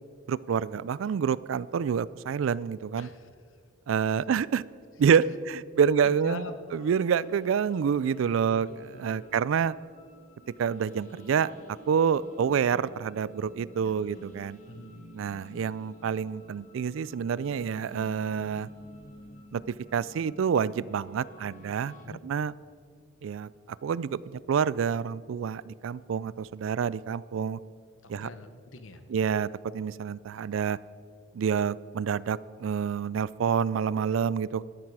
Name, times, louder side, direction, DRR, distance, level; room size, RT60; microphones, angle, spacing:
voice 1, 0.3-3.1 3.9-4.6 5.0-6.5 6.7-8.7 9.0-9.8 10.6-11.5 11.9-14.6 15.1-18.7 19.5-19.6 19.9-21.9 22.2-22.5 23.2-23.5 23.8-24.2 24.5-27.6 28.1-28.3 29.1-30.8 31.3-34.6, right 7 dB, 70° right, 20 dB, 0.3 m, -27 dB
voice 2, 3.0-3.3 6.0-6.5 8.3-9.2 14.7-15.0 22.0-22.2 28.0-29.0, left 3 dB, 70° left, 9 dB, 1.0 m, -43 dB
sound 1, 6.7-22.0, equal, 40° left, 1.7 m, -51 dB
13.0 x 10.5 x 4.8 m, 2.2 s
head